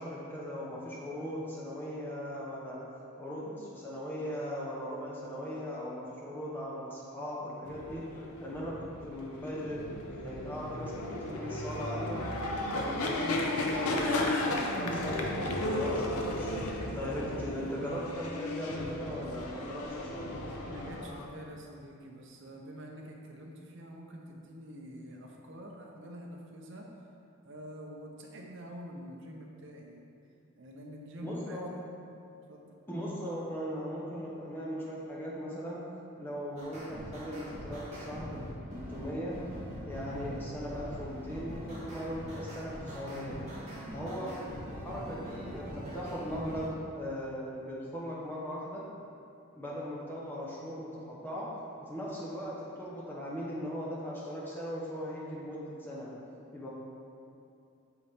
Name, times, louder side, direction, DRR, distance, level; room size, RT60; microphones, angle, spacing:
voice 1, 0.0-2.8 3.2-8.0 8.4-8.8 9.0-12.2 12.6-16.6 16.9-20.3 31.2-31.7 32.9-35.8 36.2-38.4 38.7-39.4 39.8-43.4 43.9-48.8 49.5-51.5 51.8-56.1 56.5-56.7, equal, 10° left, -6 dB, 0.9 m, -39 dB
sound 1, 7.7-21.3, left 1 dB, 85° left, 0.7 m, -34 dB
voice 2, 20.6-26.9 27.4-30.0 30.6-31.8 32.5-32.6, equal, 55° right, 0 dB, 0.8 m, -46 dB
sound 2, 36.6-46.7, equal, 30° right, 1.4 m, -42 dB
8.3 x 4.1 x 3.6 m, 2.6 s
head